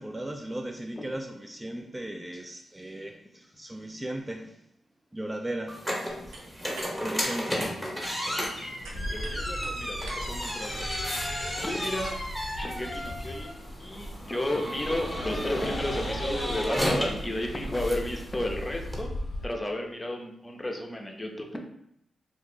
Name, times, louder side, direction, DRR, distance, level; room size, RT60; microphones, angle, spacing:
voice 1, 0.0-4.6 5.1-5.9 6.3-6.4 7.0-7.7, right 1 dB, 20° right, 3 dB, 0.3 m, -37 dB
sound 1, 5.7-19.0, equal, 5° left, 1.0 m, -34 dB
sound 2, 6.1-11.3, right 2 dB, 90° right, 0.5 m, -47 dB
Bus, 8.8-19.5, equal, 75° left, 0.5 m, -38 dB
voice 2, 8.9-10.9 11.6-12.2 12.5-19.1 19.4-21.6, left 1 dB, 25° left, 2 dB, 0.6 m, -33 dB
2.5 x 2.4 x 3.6 m, 0.75 s
supercardioid pair, 45°, 0 cm